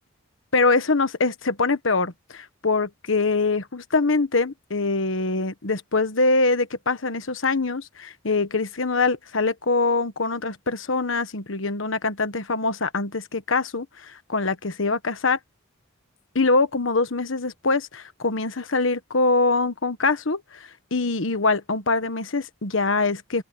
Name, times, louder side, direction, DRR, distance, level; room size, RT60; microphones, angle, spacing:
voice 1, 0.5-15.4 16.3-23.4, left 3 dB, 75° left, 1.3 m, -24 dB
open air
head